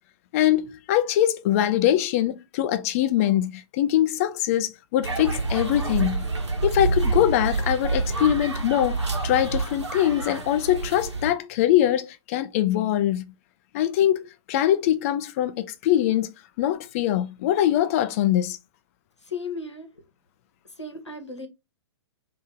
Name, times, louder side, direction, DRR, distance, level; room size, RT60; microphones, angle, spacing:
voice 1, 0.3-6.2 6.6-13.2 13.7-18.6, left 12 dB, 30° left, 0.4 m, -23 dB
sound 1, 5.0-11.3, right 3 dB, 75° right, 1.2 m, -27 dB
voice 2, 19.2-20.0 20.8-21.5, left 3 dB, 80° left, 0.9 m, -35 dB
2.8 x 2.7 x 3.5 m
figure-of-eight pair, 115°, 15 cm